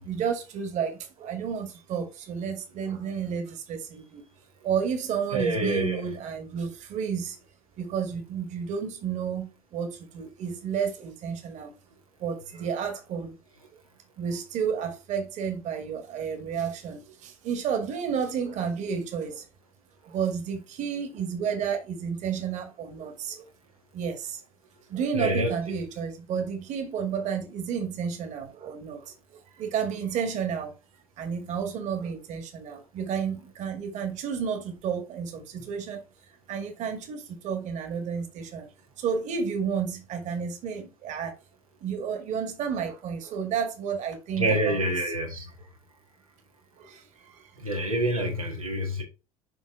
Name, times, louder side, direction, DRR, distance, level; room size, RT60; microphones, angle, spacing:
voice 1, 0.0-4.2 4.6-7.4 7.8-11.7 12.2-13.3 14.2-19.5 20.0-23.4 23.9-24.4 24.9-29.1 29.6-30.7 31.2-36.0 36.5-38.7 39.0-41.3 41.8-44.8 46.8-47.5, right 7 dB, 40° right, 1.6 m, -31 dB
voice 2, 5.3-6.0 10.2-10.3 25.1-25.5 44.4-45.5 47.6-49.0, right 1 dB, 85° right, 1.4 m, -27 dB
5.5 x 5.3 x 3.5 m
figure-of-eight pair, 70°, 18 cm